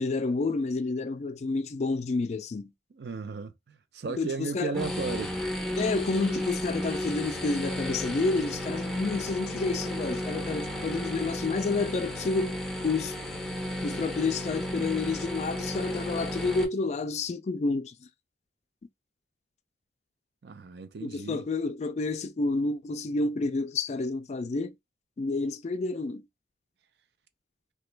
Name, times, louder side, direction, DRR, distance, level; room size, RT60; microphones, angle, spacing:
voice 1, 0.0-2.7 4.2-4.7 5.8-13.1 13.8-17.9 21.0-24.7 25.2-26.2, left 3 dB, 40° left, 0.3 m, -29 dB
voice 2, 2.9-5.6 20.4-21.4, right 4 dB, 70° right, 0.4 m, -35 dB
sound 1, 4.7-16.6, left 1 dB, ahead, 0.6 m, -33 dB
2.9 x 2.2 x 3.2 m
head